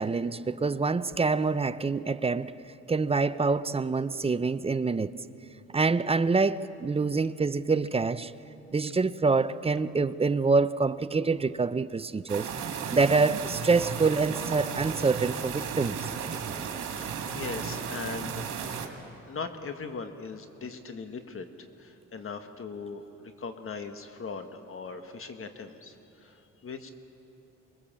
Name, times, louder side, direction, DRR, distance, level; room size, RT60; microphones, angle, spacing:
voice 1, 0.0-2.5 2.9-5.1 5.7-8.3 8.7-12.5 12.9-16.0, right 4 dB, 20° right, 0.6 m, -26 dB
sound 1, 12.3-18.9, right 7 dB, 75° right, 2.4 m, -34 dB
voice 2, 17.0-18.4 19.3-21.5 21.8-25.9 26.2-26.9, left 4 dB, 45° left, 1.6 m, -39 dB
24.5 x 21.5 x 7.4 m
cardioid pair, 90°, 30 cm